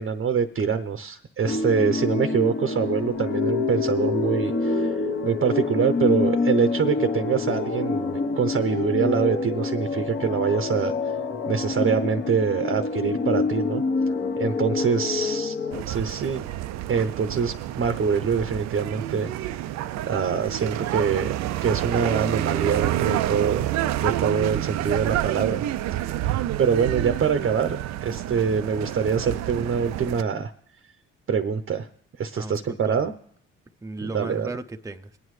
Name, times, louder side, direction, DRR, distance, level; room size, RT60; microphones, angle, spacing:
voice 1, 0.0-4.9 5.2-10.9 11.5-13.8 14.4-15.6 15.9-16.4 16.9-19.5 20.1-21.3 21.6-23.6 24.0-25.6 25.9-30.5 31.3-31.9 32.2-33.1 34.1-34.5, right 6 dB, 40° right, 9 dB, 0.8 m, -25 dB
sound 1, 1.5-15.8, left 3 dB, 45° left, 1.2 m, -26 dB
sound 2, 15.7-30.2, right 13 dB, 65° right, 0.4 m, -28 dB
voice 2, 32.3-33.1 33.8-35.2, right 2 dB, 10° right, 6 dB, 0.6 m, -36 dB
23.0 x 9.0 x 3.2 m, 0.67 s
supercardioid pair, 65°, 29 cm